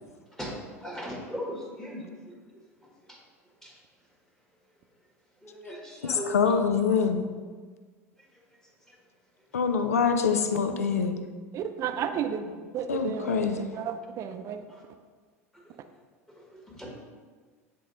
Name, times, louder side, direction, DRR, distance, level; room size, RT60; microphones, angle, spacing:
voice 1, 0.3-2.4 3.1-3.2 3.6-3.7 5.4-6.3 9.6-9.7 14.7-14.8 15.5-15.6 16.4-16.9, equal, 5° left, -1 dB, 1.4 m, -39 dB
voice 2, 6.0-7.3 9.5-11.2 12.9-13.7, left 6 dB, 75° left, 7 dB, 0.5 m, -25 dB
voice 3, 11.5-14.6, right 8 dB, 40° right, 9 dB, 0.5 m, -33 dB
9.2 x 3.7 x 3.8 m, 1.5 s
figure-of-eight pair, 75°, 8 cm